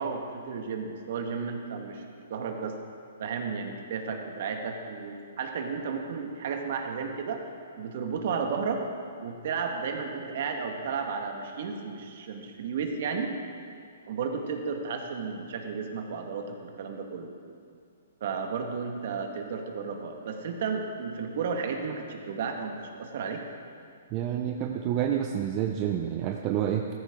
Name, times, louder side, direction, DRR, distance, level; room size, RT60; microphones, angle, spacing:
voice 1, 0.0-2.7 3.2-7.4 7.8-8.8 9.2-13.3 14.1-17.3 18.2-23.4, right 5 dB, 60° right, 3 dB, 1.7 m, -33 dB
voice 2, 24.1-26.9, right 10 dB, 30° right, 3 dB, 0.6 m, -28 dB
14.5 x 13.5 x 3.8 m, 2.3 s
hypercardioid pair, 145°, 0 cm